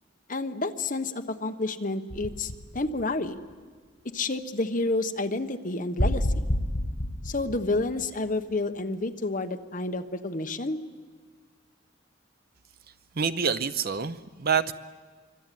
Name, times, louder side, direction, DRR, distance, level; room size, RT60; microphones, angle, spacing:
voice 1, 0.3-3.4 4.1-6.4 7.2-10.8, left 2 dB, 40° left, 7 dB, 1.2 m, -30 dB
sound 1, 2.1-3.5 6.0-8.5, left 1 dB, 75° left, 5.5 m, -29 dB
voice 2, 13.2-14.7, right 6 dB, 50° right, 12 dB, 0.8 m, -27 dB
26.5 x 24.0 x 9.3 m, 1.5 s
head